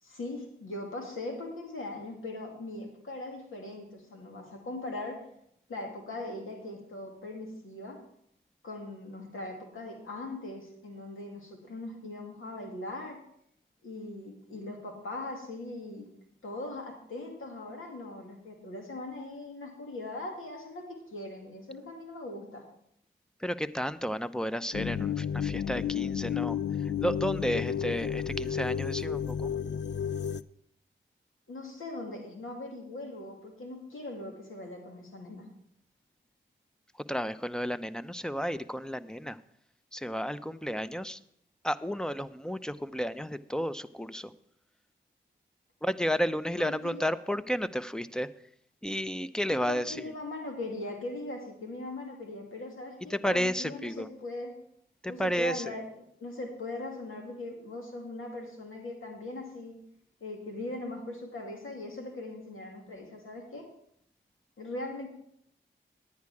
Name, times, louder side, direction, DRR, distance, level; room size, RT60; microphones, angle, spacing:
voice 1, 0.0-5.3 5.7-8.0 8.6-13.2 13.8-16.1 16.4-22.6 31.5-35.5 46.6-47.1 49.5-54.6 55.1-59.8 60.2-63.7 64.6-65.1, left 2 dB, 85° left, 1 dB, 2.3 m, -40 dB
voice 2, 23.4-26.6 27.0-29.5 37.1-39.4 39.9-41.2 41.6-44.3 45.8-48.3 48.8-50.0 53.1-54.1 55.0-55.7, equal, 5° left, 13 dB, 0.6 m, -32 dB
sound 1, 24.7-30.4, left 8 dB, 60° left, 0.4 m, -32 dB
10.0 x 9.7 x 4.8 m, 0.71 s
cardioid pair, 45°, 20 cm